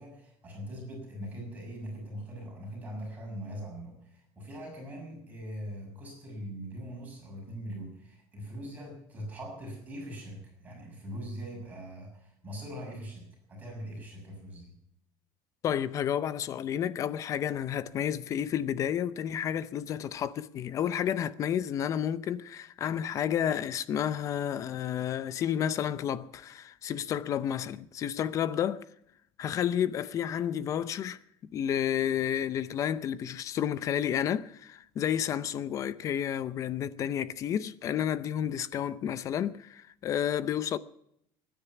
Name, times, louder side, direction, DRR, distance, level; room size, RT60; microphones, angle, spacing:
voice 1, 0.0-14.7, equal, 15° right, 6.4 m, -42 dB
voice 2, 15.6-28.8 29.4-31.2 31.5-40.8, left 9 dB, 35° left, 0.6 m, -31 dB
23.0 x 10.0 x 5.8 m
cardioid pair, 170°, 10 cm